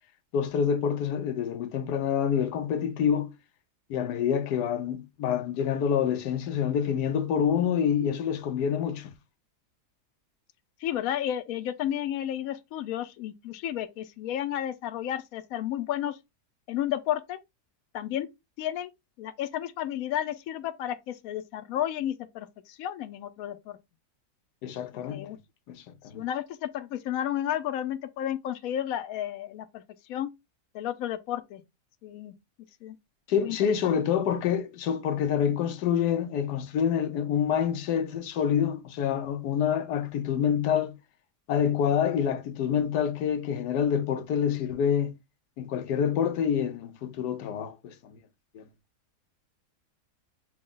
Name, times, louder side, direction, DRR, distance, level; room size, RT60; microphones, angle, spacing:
voice 1, 0.3-3.3 3.9-9.1 24.6-25.3 25.7-26.2 33.3-40.9 41.5-45.1 45.6-48.2 48.5-48.6, left 8 dB, 90° left, 1.3 m, -27 dB
voice 2, 10.8-16.2 16.7-17.4 17.9-18.3 18.6-18.9 19.2-23.8 25.1-25.4 26.1-29.8 30.1-30.3 30.7-31.6 32.0-32.3 32.8-32.9 33.4-33.9, left 11 dB, 70° left, 0.9 m, -32 dB
6.2 x 2.3 x 3.7 m
omnidirectional pair, 1.7 m